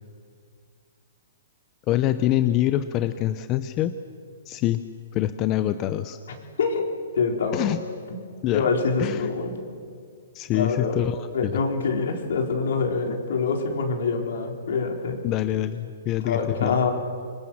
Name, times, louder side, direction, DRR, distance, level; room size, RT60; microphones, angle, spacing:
voice 1, 1.9-3.9 4.5-4.8 5.1-6.2 7.5-7.8 8.4-8.7 9.0-9.3 10.3-11.5 15.2-16.8, left 13 dB, 25° left, 11 dB, 0.7 m, -25 dB
voice 2, 6.6-6.9 7.2-7.7 8.5-9.6 10.5-11.0 11.3-15.2 16.2-16.9, left 4 dB, 70° left, 2 dB, 4.5 m, -25 dB
25.5 x 22.0 x 7.4 m, 2.2 s
hypercardioid pair, 155°, 0 cm